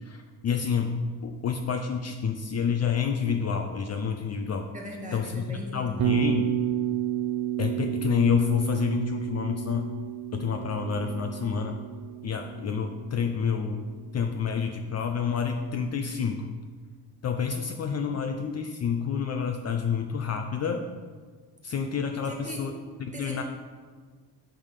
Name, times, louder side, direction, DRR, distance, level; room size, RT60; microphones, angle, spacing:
voice 1, 0.0-4.7 5.1-6.5 7.6-9.9 10.3-11.8 12.2-16.5 17.2-20.9 21.6-22.7 23.0-23.4, left 6 dB, 40° left, 5 dB, 0.6 m, -28 dB
voice 2, 4.7-6.1 18.0-18.2 22.2-22.6 23.1-23.4, equal, 20° right, -1 dB, 1.6 m, -40 dB
Bass guitar, 6.0-14.1, right 12 dB, 50° right, 0.6 m, -31 dB
10.0 x 3.8 x 6.6 m, 1.5 s
cardioid pair, 140°, 41 cm